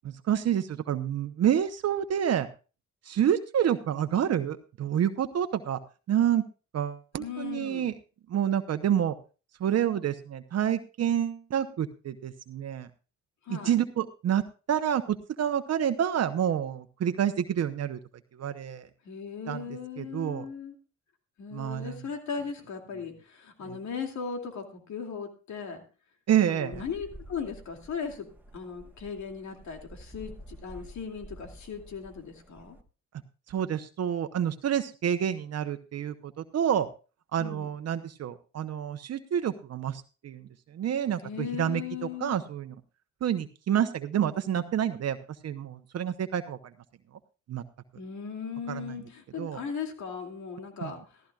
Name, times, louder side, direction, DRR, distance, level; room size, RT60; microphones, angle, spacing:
voice 1, 0.0-2.5 3.0-5.8 6.1-6.4 6.7-7.9 8.3-9.1 9.6-12.9 13.5-18.0 18.4-18.9 19.5-20.4 21.5-22.0 23.6-23.8 26.3-26.8 33.5-36.9 37.3-42.7 43.2-45.2 45.4-46.6 47.5-47.6 48.7-49.0 49.4-49.6 50.8-50.9, right 9 dB, 55° right, 9 dB, 0.9 m, -28 dB
voice 2, 7.2-7.9 13.4-13.7 19.0-20.7 21.4-25.8 26.5-28.3 28.5-32.8 37.4-37.7 41.2-42.4 48.0-51.2, left 6 dB, 70° left, 4 dB, 2.6 m, -38 dB
sound 1, 26.7-32.8, right 1 dB, 5° right, 1.3 m, -49 dB
15.5 x 14.5 x 2.4 m, 0.33 s
cardioid pair, 90°, 30 cm